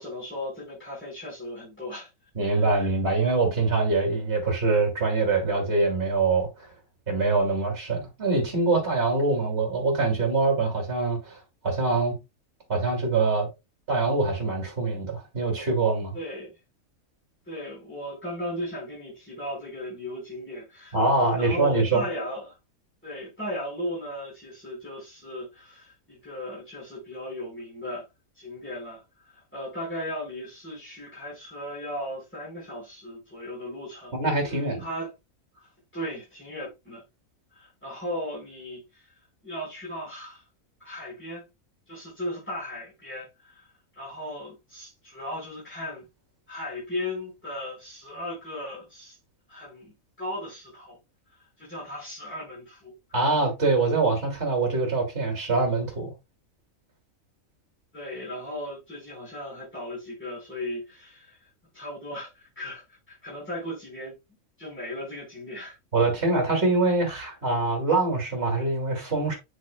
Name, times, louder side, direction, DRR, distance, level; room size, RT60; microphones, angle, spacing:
voice 1, 0.0-2.1 2.5-2.8 9.3-9.5 16.1-16.6 17.5-21.0 21.3-22.5 23.0-28.0 28.3-34.1 34.5-35.1 35.5-37.0 37.5-39.1 39.4-40.4 40.8-41.4 41.9-43.7 44.0-46.1 46.5-49.2 49.5-49.9 50.2-51.0 51.6-52.9 57.9-61.5 61.7-64.1 64.6-65.8, left 1 dB, 10° left, 4.2 m, -37 dB
voice 2, 2.4-6.5 7.1-12.2 12.7-13.5 13.9-16.1 20.9-22.0 34.1-34.8 53.1-56.1 65.9-69.3, right 3 dB, 45° right, 2.6 m, -24 dB
8.2 x 6.0 x 2.2 m
omnidirectional pair, 1.5 m